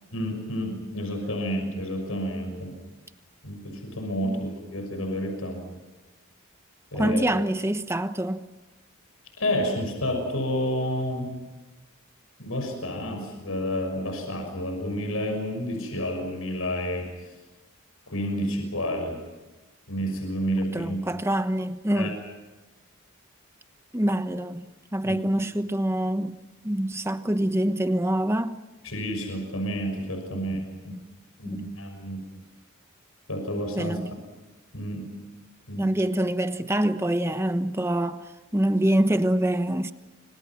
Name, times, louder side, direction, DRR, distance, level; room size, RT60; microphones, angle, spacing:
voice 1, 0.1-2.8 3.4-5.6 6.9-7.2 9.4-11.3 12.4-17.1 18.1-19.2 19.9-21.0 21.9-22.1 25.0-25.2 28.8-30.9 31.4-32.2 33.3-34.0 34.7-35.1 35.7-35.9, equal, 75° left, 6.3 m, -30 dB
voice 2, 6.9-8.5 20.7-22.2 23.9-26.4 26.6-28.6 30.9-31.1 31.4-31.8 33.8-34.1 35.8-39.9, right 1 dB, 10° right, 1.1 m, -25 dB
29.0 x 26.0 x 6.0 m
head